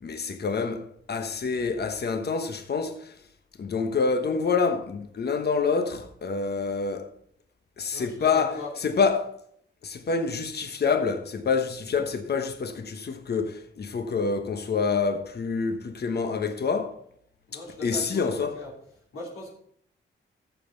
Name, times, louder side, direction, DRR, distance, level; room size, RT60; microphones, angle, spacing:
voice 1, 0.0-3.1 3.6-7.1 7.8-9.3 9.8-17.0 17.8-18.5, left 5 dB, 50° left, 1.2 m, -27 dB
voice 2, 7.9-8.7 17.5-18.7 19.1-19.5, left 2 dB, 80° left, 3.0 m, -39 dB
14.0 x 7.2 x 3.9 m
cardioid pair, 90°, 21 cm